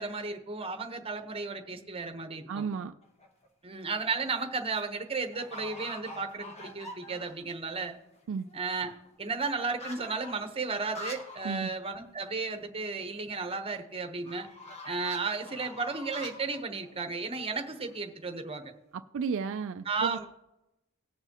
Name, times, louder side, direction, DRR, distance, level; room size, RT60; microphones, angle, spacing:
voice 1, 0.0-2.7 3.6-8.0 8.5-8.9 9.2-14.5 14.8-18.7 19.9-20.3, right 4 dB, 25° right, 6 dB, 1.0 m, -34 dB
voice 2, 2.5-2.9 8.3-8.5 11.4-11.7 18.9-20.3, right 5 dB, 60° right, 9 dB, 0.4 m, -33 dB
sound 1, 3.0-3.5 4.0-4.5 4.7-4.8 5.3-7.5 7.9-8.0 8.2-11.5 11.8-11.9 12.2-12.3 14.2-18.0, left 1 dB, 30° left, 1.3 m, -46 dB
19.0 x 6.8 x 2.9 m, 0.93 s
head